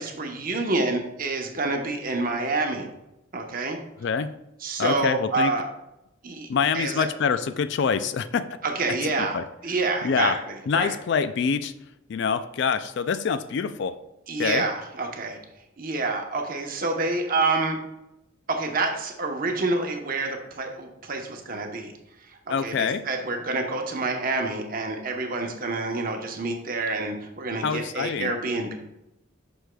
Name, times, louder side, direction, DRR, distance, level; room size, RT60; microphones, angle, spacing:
voice 1, 0.0-2.9 3.3-3.8 4.6-5.6 6.2-6.5 6.7-7.1 8.6-11.0 14.3-15.4 15.8-17.8 18.5-21.9 22.3-28.7, right 3 dB, 40° right, 3 dB, 0.9 m, -28 dB
voice 2, 4.8-5.5 6.5-8.4 9.3-9.4 10.0-10.4 10.7-11.7 12.1-14.0 14.4-14.6 22.5-23.0 27.6-28.3, left 6 dB, 55° left, 12 dB, 0.3 m, -25 dB
8.0 x 6.1 x 2.3 m, 0.89 s
head